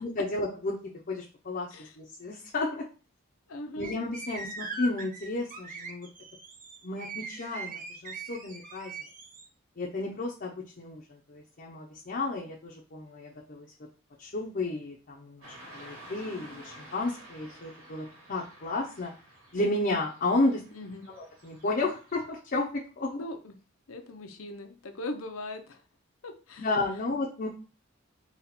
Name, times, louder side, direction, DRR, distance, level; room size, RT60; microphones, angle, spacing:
voice 1, 0.0-1.7 2.0-2.9 3.8-6.1 6.8-8.9 9.8-13.7 14.2-19.1 19.5-20.6 21.1-23.2 26.6-27.5, left 2 dB, 45° left, -2 dB, 0.7 m, -32 dB
voice 2, 3.5-3.9 20.7-21.1 23.1-23.5 23.9-25.8 26.2-26.7, left 1 dB, 80° left, 6 dB, 0.7 m, -39 dB
sound 1, 3.8-9.4, right 3 dB, 40° right, 0.7 m, -41 dB
Car passing by / Traffic noise roadway noise, 15.4-22.2, right 1 dB, 80° right, 1.8 m, -51 dB
4.0 x 2.4 x 4.3 m, 0.35 s
head